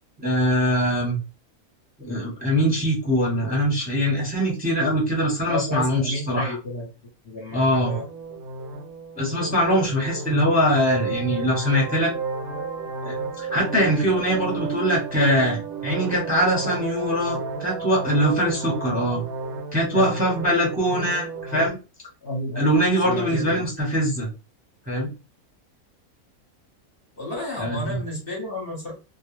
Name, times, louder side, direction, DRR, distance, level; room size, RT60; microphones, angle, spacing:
voice 1, 0.2-1.2 2.0-6.5 7.5-7.9 9.2-12.1 13.0-19.2 19.7-21.8 22.5-24.3 24.9-25.1 27.6-28.0, equal, 5° right, -3 dB, 0.8 m, -22 dB
voice 2, 5.5-6.9 7.2-8.1 19.9-20.1 22.2-22.6 23.0-23.7 27.2-28.9, left 1 dB, 45° left, -3 dB, 0.9 m, -31 dB
sound 1, 7.7-21.7, right 4 dB, 75° right, 1.0 m, -32 dB
2.4 x 2.1 x 3.0 m, 0.31 s
omnidirectional pair, 1.6 m